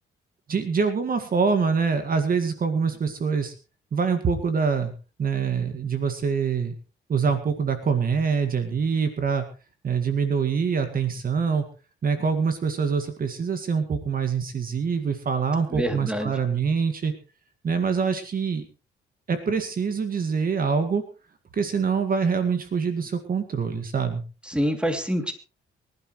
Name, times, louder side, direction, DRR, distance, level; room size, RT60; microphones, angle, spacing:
voice 1, 0.5-3.5 3.9-4.9 5.2-6.7 7.1-9.5 9.8-11.6 12.0-17.1 17.6-18.6 19.3-21.0 21.5-24.2, right 5 dB, 45° right, 8 dB, 2.0 m, -25 dB
voice 2, 15.7-16.3 24.5-25.3, equal, 5° right, 6 dB, 2.9 m, -26 dB
24.0 x 11.5 x 3.2 m, 0.33 s
cardioid pair, 90°, 20 cm